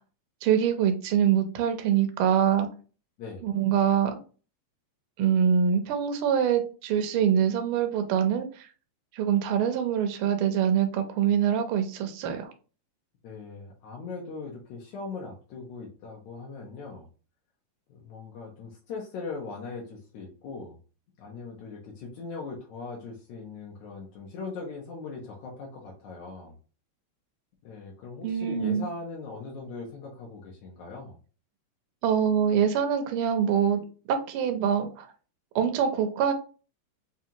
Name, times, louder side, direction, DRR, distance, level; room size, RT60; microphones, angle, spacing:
voice 1, 0.4-2.7 3.4-4.2 5.2-8.5 9.2-12.5 28.2-28.9 32.0-33.8 34.1-35.1 35.5-36.3, right 8 dB, 80° right, 6 dB, 1.2 m, -24 dB
voice 2, 13.2-17.1 17.9-20.8 21.2-26.5 27.6-31.2, left 4 dB, 75° left, -2 dB, 2.2 m, -40 dB
5.6 x 2.5 x 2.8 m, 0.36 s
omnidirectional pair, 3.3 m